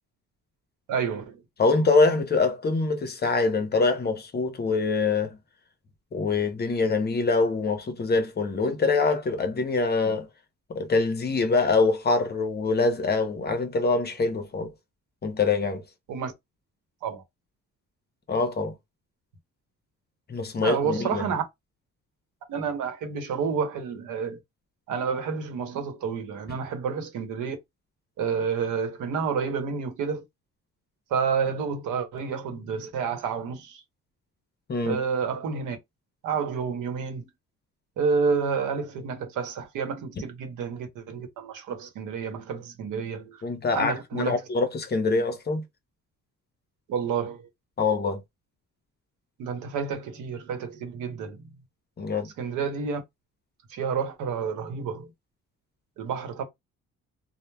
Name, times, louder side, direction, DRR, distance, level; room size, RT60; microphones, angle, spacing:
voice 1, 0.9-1.4 16.1-16.3 17.0-17.2 20.6-21.4 22.5-24.4 24.9-27.6 28.2-30.2 31.1-33.8 34.8-35.8 36.2-37.3 38.0-43.4 43.7-44.4 46.9-47.5 49.4-51.4 52.4-53.0 53.7-55.1 56.0-56.4, right 6 dB, 85° right, 0.9 m, -29 dB
voice 2, 1.6-5.4 6.1-10.3 10.7-14.7 15.2-15.8 18.3-18.7 20.3-21.2 34.7-35.0 43.4-45.6 47.8-48.2 52.0-52.3, left 3 dB, 35° left, 0.6 m, -24 dB
3.1 x 2.1 x 2.2 m
cardioid pair, 90°, 30 cm